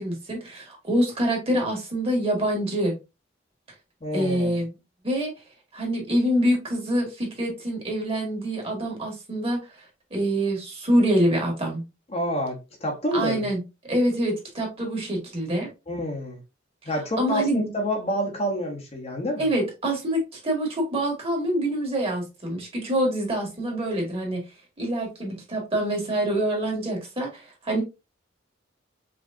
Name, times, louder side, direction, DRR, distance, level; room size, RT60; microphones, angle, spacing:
voice 1, 0.0-2.9 4.1-4.7 5.0-5.3 5.7-9.6 10.1-11.8 13.1-13.6 13.9-15.7 17.2-17.7 19.4-24.4 24.8-27.8, right 1 dB, 30° right, 1.9 m, -25 dB
voice 2, 4.0-4.6 12.1-13.5 15.9-16.4 16.9-19.5, equal, 35° left, 1.0 m, -28 dB
5.1 x 3.1 x 2.6 m
head